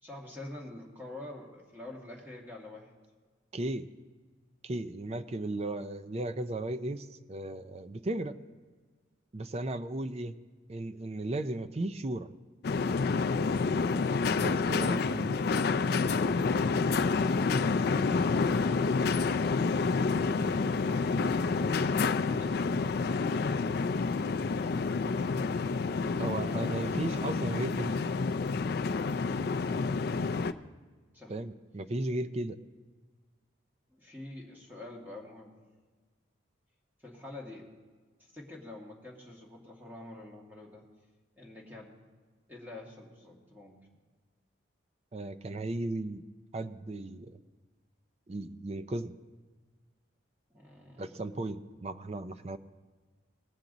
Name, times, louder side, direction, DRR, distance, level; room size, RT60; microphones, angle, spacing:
voice 1, 0.0-2.9 26.4-27.0 31.1-31.3 33.9-35.5 37.0-37.7 38.2-40.8 41.4-42.0 42.5-43.8 50.5-51.2, left 1 dB, 10° right, -2 dB, 1.9 m, -47 dB
voice 2, 3.5-3.9 4.6-8.4 9.3-10.4 10.7-12.3 14.4-15.4 26.2-28.0 31.3-32.6 45.1-46.2 46.5-47.4 48.3-49.1 51.0-52.6, right 2 dB, 30° right, 11 dB, 0.4 m, -35 dB
sound 1, 12.6-30.5, left 4 dB, 55° left, 0.4 m, -28 dB
19.5 x 7.3 x 3.9 m, 1.4 s
head